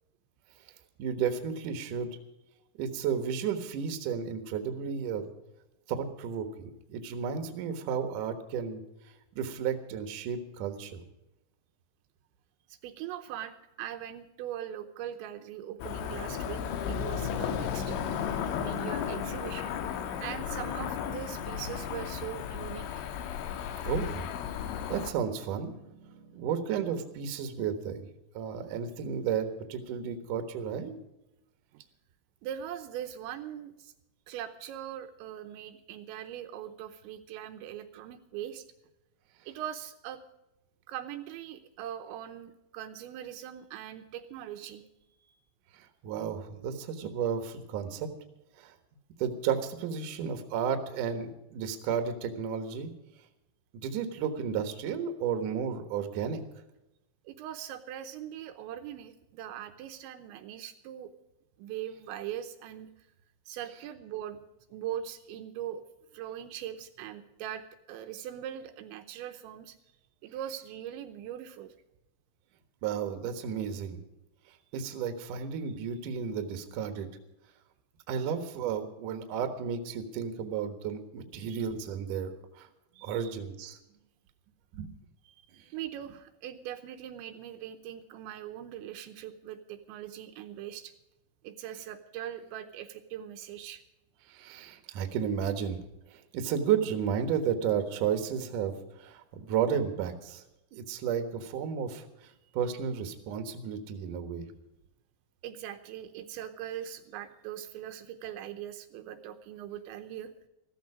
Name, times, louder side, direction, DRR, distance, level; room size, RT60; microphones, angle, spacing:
voice 1, 1.0-2.2 2.8-5.3 5.9-8.8 9.4-11.0 23.8-24.3 24.9-28.1 28.3-30.9 45.7-48.1 48.6-48.7 49.2-52.9 53.7-56.4 72.8-74.0 74.7-77.1 78.1-82.7 83.0-83.8 84.7-84.9 94.3-95.8 96.1-100.4 100.7-104.5, right 7 dB, 60° right, 7 dB, 2.3 m, -33 dB
voice 2, 12.7-18.2 18.6-23.1 31.7-31.9 32.4-33.9 34.3-38.7 39.5-40.2 40.9-44.8 45.2-45.4 57.2-61.1 61.6-63.1 63.5-64.4 64.7-65.8 66.1-69.8 70.2-71.8 81.6-81.7 82.9-83.3 85.3-90.9 91.4-93.8 105.4-110.3, right 11 dB, 80° right, 7 dB, 3.0 m, -41 dB
Cricket / Motor vehicle (road), 15.8-25.1, left 8 dB, 85° left, 3.6 m, -34 dB
15.0 x 14.5 x 4.9 m, 0.92 s
omnidirectional pair, 5.4 m